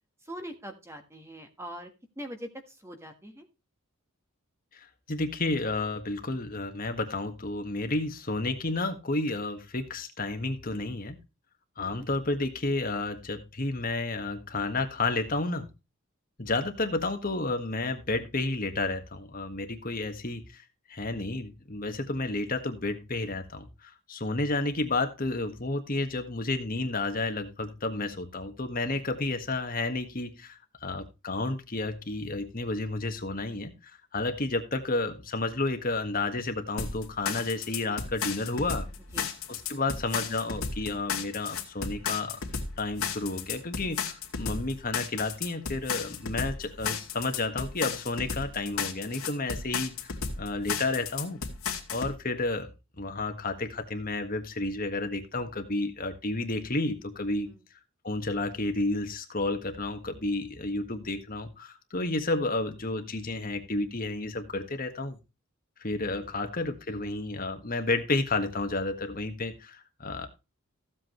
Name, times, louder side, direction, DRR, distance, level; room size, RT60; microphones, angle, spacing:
voice 1, 0.3-1.9 2.2-3.4 11.8-12.0 39.1-39.3 57.5-57.6 66.1-66.4, equal, 10° right, 5 dB, 1.5 m, -42 dB
voice 2, 4.7-11.2 11.8-15.7 16.4-38.9 39.5-42.4 42.8-51.4 51.9-52.7 53.0-57.5 58.0-65.2 65.8-70.3, left 2 dB, 40° left, 7 dB, 1.6 m, -31 dB
sound 1, 36.8-52.1, left 6 dB, 75° left, 2.4 m, -34 dB
15.0 x 8.0 x 3.1 m, 0.28 s
head